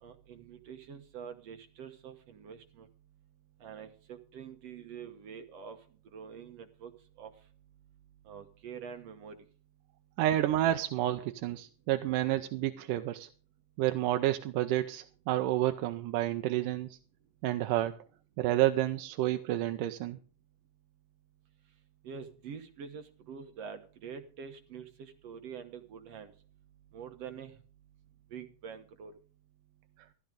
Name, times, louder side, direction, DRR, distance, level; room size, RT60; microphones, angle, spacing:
voice 1, 0.0-2.9 3.6-5.8 6.1-6.9 7.2-7.3 8.3-9.4 22.0-26.3 26.9-27.6 28.3-29.1, right 7 dB, 60° right, 2.0 m, -46 dB
voice 2, 10.2-13.3 13.8-17.0 17.4-18.0 18.4-20.2, right 14 dB, 85° right, 2.3 m, -30 dB
14.5 x 13.5 x 3.8 m
omnidirectional pair, 3.7 m